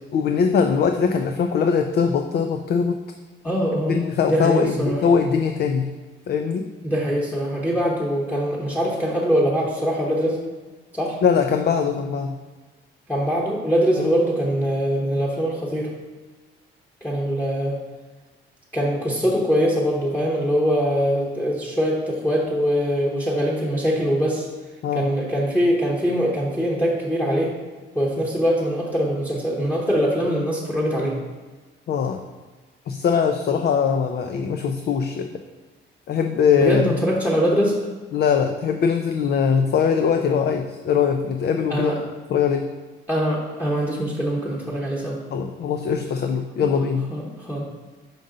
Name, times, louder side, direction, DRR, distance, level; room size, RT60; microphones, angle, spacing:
voice 1, 0.1-3.0 3.9-5.9 6.3-6.7 11.2-12.4 14.0-14.1 24.8-25.1 31.9-32.2 32.9-35.3 36.1-36.9 38.1-41.9 42.3-42.7 45.3-47.1, left 6 dB, 55° left, 6 dB, 0.4 m, -21 dB
voice 2, 3.4-4.0 4.3-5.0 6.8-10.4 10.9-11.2 13.1-15.9 17.0-17.8 18.7-24.5 24.9-27.5 27.9-31.1 36.6-37.8 41.7-42.0 43.1-45.2 47.1-47.6, equal, 10° left, -4 dB, 1.0 m, -22 dB
5.4 x 5.3 x 3.8 m, 1.3 s
cardioid pair, 90°, 20 cm